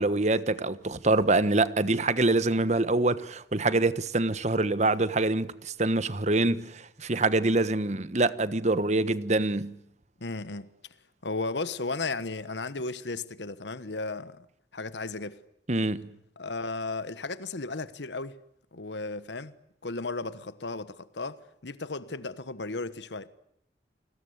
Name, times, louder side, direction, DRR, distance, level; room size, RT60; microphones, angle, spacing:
voice 1, 0.0-9.7 15.7-16.1, right 2 dB, 40° right, 1.3 m, -25 dB
voice 2, 10.2-10.7 11.2-14.4 14.7-15.4 16.4-18.4 18.7-19.5 19.8-21.4 21.6-23.3, left 3 dB, 90° left, 1.3 m, -34 dB
29.5 x 20.5 x 9.5 m
head